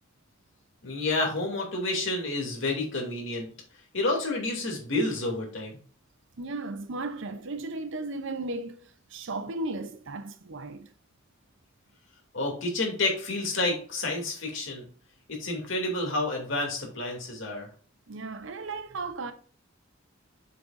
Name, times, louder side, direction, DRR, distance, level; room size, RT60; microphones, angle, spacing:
voice 1, 0.8-3.5 3.9-5.8 12.3-14.9 15.3-17.7, left 2 dB, 65° left, 2.7 m, -29 dB
voice 2, 6.4-10.9 18.1-19.3, right 2 dB, 65° right, 0.7 m, -35 dB
7.4 x 6.4 x 2.6 m
head